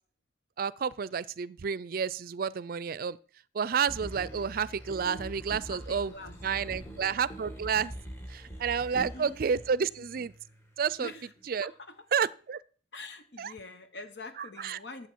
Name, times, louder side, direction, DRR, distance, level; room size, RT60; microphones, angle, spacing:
voice 1, 0.6-3.2 3.5-6.1 6.4-7.9 8.3-10.3 10.8-11.1 11.5-11.7 12.1-12.6 13.4-13.5 14.4-14.8, right 6 dB, 55° right, 0.4 m, -30 dB
sound 1, 3.9-10.8 11.4-11.5, right 1 dB, 15° left, 2.0 m, -44 dB
voice 2, 5.7-7.0 8.9-9.4 10.0-10.1 11.0-11.3 11.6-12.0 12.9-15.1, left 3 dB, 75° left, 1.1 m, -45 dB
12.5 x 7.7 x 4.6 m
head